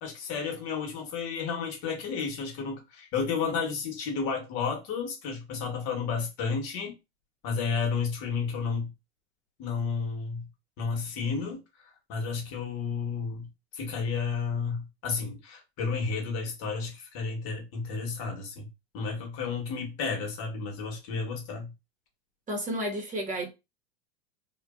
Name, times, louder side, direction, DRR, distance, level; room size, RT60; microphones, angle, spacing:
voice 1, 0.0-7.0 7.4-8.9 9.6-10.5 10.8-11.6 12.1-13.5 13.7-18.7 18.9-21.7, left 5 dB, 50° left, 1.2 m, -32 dB
voice 2, 22.5-23.5, right 1 dB, 25° right, 0.9 m, -31 dB
2.5 x 2.2 x 2.3 m
hypercardioid pair, 100°, 33 cm